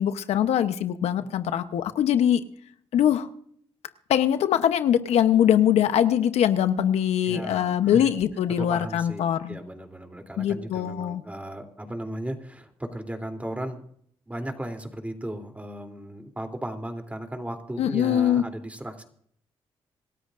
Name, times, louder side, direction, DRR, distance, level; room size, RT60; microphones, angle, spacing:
voice 1, 0.0-2.4 2.9-3.3 4.1-9.6 10.4-11.2 17.8-18.4, left 10 dB, 85° left, 10 dB, 0.9 m, -22 dB
voice 2, 7.2-8.1 8.5-13.8 14.3-19.0, right 1 dB, 15° right, 5 dB, 3.1 m, -36 dB
26.5 x 13.0 x 2.6 m, 0.64 s
cardioid pair, 65°, 11 cm